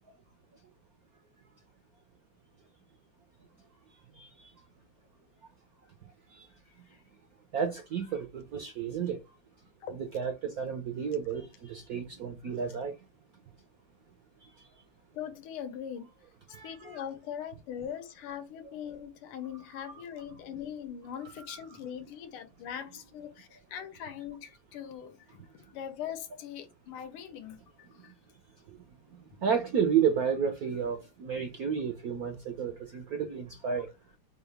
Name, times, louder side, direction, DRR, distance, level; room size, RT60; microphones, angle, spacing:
voice 1, 7.5-9.2 10.1-12.9 16.5-17.0 29.4-33.9, right 7 dB, 70° right, 0.8 m, -31 dB
voice 2, 15.1-16.1 16.5-25.4 25.7-28.1 33.7-33.8, left 9 dB, 85° left, 1.7 m, -41 dB
4.8 x 2.3 x 3.4 m
omnidirectional pair, 2.4 m